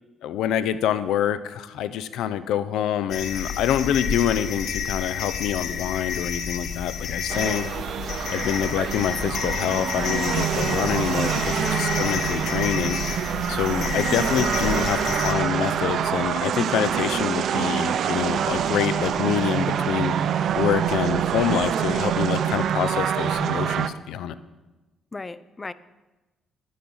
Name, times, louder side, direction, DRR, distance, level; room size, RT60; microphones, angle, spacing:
voice 1, 0.2-7.7 8.3-13.0 13.5-20.1 20.5-24.3, left 10 dB, 85° left, 13 dB, 0.6 m, -26 dB
sound 1, 3.1-15.3, left 7 dB, 70° left, 0.9 m, -30 dB
sound 2, 7.3-23.9, right 8 dB, 65° right, 0.5 m, -25 dB
voice 2, 11.6-12.1 25.1-25.7, left 3 dB, 25° left, 16 dB, 0.5 m, -35 dB
10.5 x 10.5 x 5.5 m, 1.1 s
cardioid pair, 90°, 0 cm